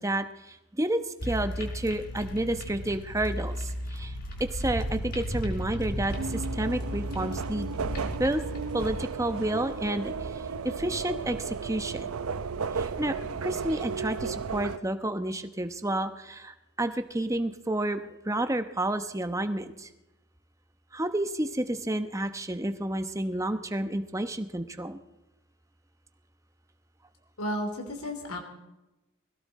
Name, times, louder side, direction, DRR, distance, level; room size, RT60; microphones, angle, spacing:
voice 1, 0.0-4.2 4.5-7.7 8.2-8.4 8.7-12.1 12.7-19.9 20.9-25.0, right 1 dB, 15° right, 9 dB, 0.9 m, -30 dB
sound 1, 1.2-9.0, equal, 45° left, 4.6 m, -35 dB
sound 2, 6.1-14.8, right 5 dB, 85° right, 0.7 m, -34 dB
voice 2, 27.4-28.4, equal, 85° left, 3 dB, 3.3 m, -33 dB
21.0 x 16.0 x 4.2 m, 0.99 s
head